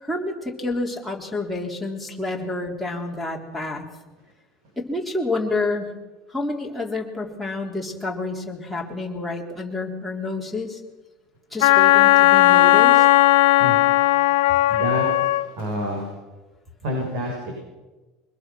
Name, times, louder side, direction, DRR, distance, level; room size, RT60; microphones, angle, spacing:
voice 1, 0.0-3.9 4.8-5.9 6.3-10.8 11.5-13.1, left 2 dB, ahead, 4 dB, 3.4 m, -29 dB
Wind instrument woodwind instrument, 11.6-15.5, left 16 dB, 85° left, 1.0 m, -16 dB
voice 2, 14.7-16.0 16.8-17.5, equal, 70° right, 0 dB, 7.7 m, -28 dB
24.0 x 20.5 x 6.2 m, 1.1 s
cardioid pair, 155°, 0 cm